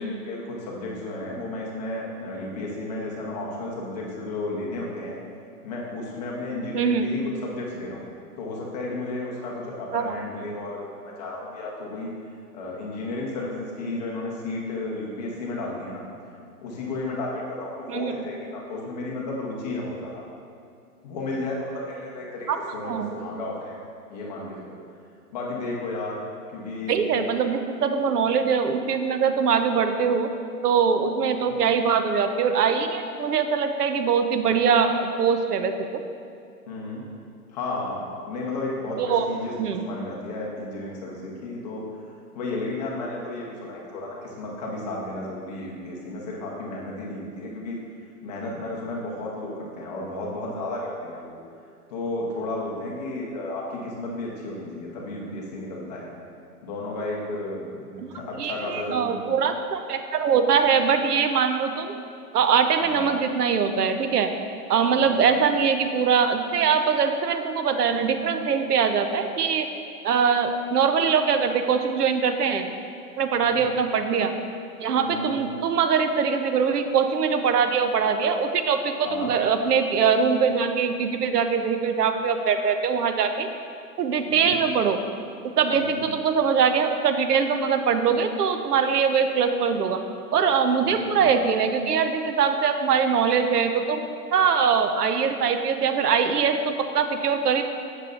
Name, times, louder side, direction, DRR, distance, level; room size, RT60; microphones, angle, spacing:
voice 1, 0.0-5.2 5.6-8.1 8.4-12.1 12.5-16.0 16.6-20.2 21.0-23.8 24.1-24.8 25.3-26.2 26.5-27.0 27.3-27.4 31.4-31.6 36.7-37.0 37.5-41.9 42.3-47.8 48.2-51.3 51.9-56.1 56.6-59.2 62.8-63.1 65.0-65.2 73.4-73.6 75.0-75.3 79.0-79.3 84.2-84.6 85.7-86.0 90.8-91.3, left 2 dB, 25° left, -3 dB, 0.8 m, -33 dB
voice 2, 6.7-7.1 9.9-10.1 17.9-18.1 22.5-22.6 22.9-23.1 26.9-30.3 30.6-36.0 39.1-39.3 39.6-39.8 58.0-58.1 58.4-61.9 62.3-64.3 64.7-69.7 70.0-72.7 73.2-74.3 74.8-83.5 84.0-85.0 85.6-90.0 90.3-94.0 94.3-97.6, right 6 dB, 75° right, 7 dB, 0.7 m, -22 dB
7.4 x 6.5 x 2.5 m, 2.4 s
hypercardioid pair, 145°, 48 cm